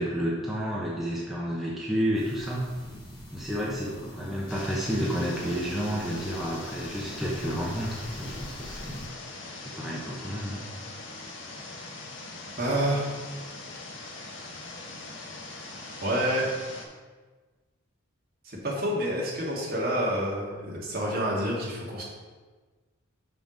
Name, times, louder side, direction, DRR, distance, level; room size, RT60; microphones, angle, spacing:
voice 1, 0.0-2.7 3.3-9.1 9.5-10.6, equal, ahead, -5 dB, 0.8 m, -30 dB
sound 1, 2.1-9.1, left 1 dB, 20° left, 1.6 m, -45 dB
sound 2, 4.5-16.8, left 2 dB, 55° left, 1.1 m, -42 dB
voice 2, 12.6-13.1 16.0-16.5 18.5-22.0, right 1 dB, 45° right, -4 dB, 1.8 m, -28 dB
5.8 x 5.8 x 5.0 m, 1.4 s
head